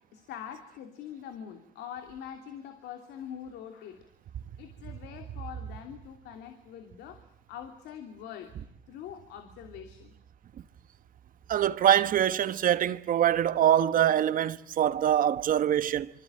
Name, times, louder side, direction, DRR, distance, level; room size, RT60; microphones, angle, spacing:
voice 1, 0.1-4.1 4.6-10.1, left 9 dB, 80° left, 2.9 m, -44 dB
voice 2, 11.5-16.1, right 10 dB, 55° right, 1.3 m, -24 dB
26.0 x 25.5 x 8.8 m
cardioid pair, 110°, 17 cm